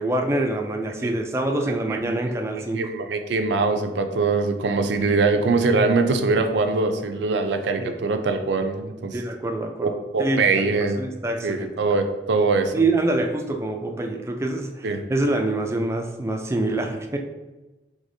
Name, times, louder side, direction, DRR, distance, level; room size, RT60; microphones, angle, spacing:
voice 1, 0.0-2.8 7.8-8.0 9.1-11.7 12.7-17.2, right 2 dB, 15° right, 3 dB, 0.3 m, -26 dB
voice 2, 2.7-9.1 9.8-11.0 11.4-12.7 14.8-15.0, right 3 dB, 85° right, 7 dB, 0.4 m, -22 dB
5.0 x 3.4 x 2.7 m, 1.1 s
head